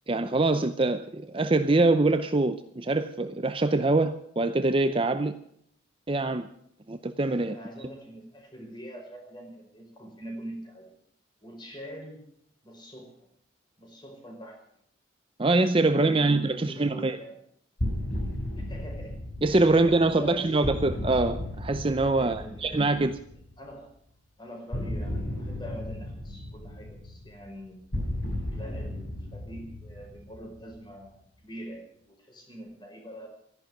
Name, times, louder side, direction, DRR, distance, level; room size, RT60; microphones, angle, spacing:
voice 1, 0.1-5.4 6.1-6.5 6.9-7.9 15.4-17.2 19.4-23.2, right 2 dB, 25° right, 0.6 m, -24 dB
voice 2, 7.5-11.0 11.4-12.2 12.6-13.3 13.8-14.6 15.8-17.4 18.5-19.2 19.7-20.9 22.2-22.9 23.6-23.9 24.4-27.8 28.5-33.3, equal, 25° left, 4.8 m, -44 dB
sound 1, 17.8-23.5 24.7-31.0, left 1 dB, 80° left, 5.4 m, -35 dB
13.0 x 11.0 x 9.1 m
head